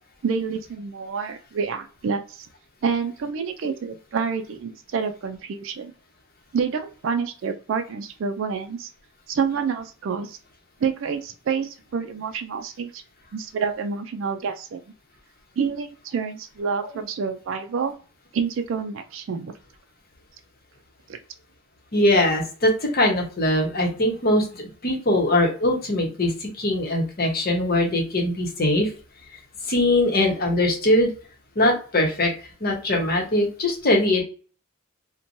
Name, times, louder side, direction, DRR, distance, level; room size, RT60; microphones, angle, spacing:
voice 1, 0.2-2.5 2.8-5.9 6.5-8.9 9.3-10.4 10.8-13.0 13.3-14.8 15.6-17.9 18.3-19.5 21.1-21.2, right 6 dB, 65° right, 6 dB, 0.3 m, -28 dB
voice 2, 21.9-28.9 29.7-31.1 31.6-32.3 32.6-34.2, left 1 dB, 45° left, 1 dB, 0.9 m, -21 dB
3.0 x 2.2 x 2.6 m, 0.38 s
head